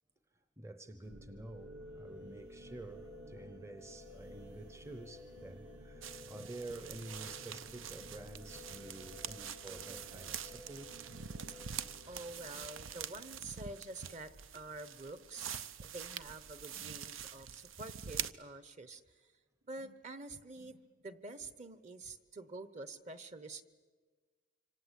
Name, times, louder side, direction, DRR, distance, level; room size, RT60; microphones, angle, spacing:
voice 1, 0.6-11.0, right 2 dB, 15° right, 0.7 m, -49 dB
sound 1, 1.0-13.0, equal, 65° right, 3.2 m, -53 dB
sound 2, 6.0-18.3, right 8 dB, 85° right, 0.8 m, -45 dB
voice 2, 11.7-19.3 19.6-23.6, right 2 dB, 35° right, 1.1 m, -48 dB
26.0 x 25.5 x 8.3 m
head